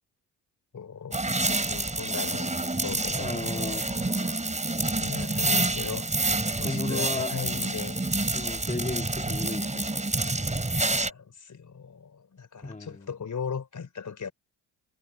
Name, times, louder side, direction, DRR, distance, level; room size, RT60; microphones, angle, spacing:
voice 1, 0.7-2.5 2.8-4.6 4.9-6.3 6.6-8.0 10.8-14.3, left 6 dB, 45° left, 4.4 m, -38 dB
sound 1, 1.1-11.1, right 2 dB, 15° right, 4.6 m, -28 dB
voice 2, 3.2-3.9 6.6-7.3 8.3-9.9 12.6-13.1, left 3 dB, 20° left, 3.0 m, -34 dB
hypercardioid pair, 50°, 41 cm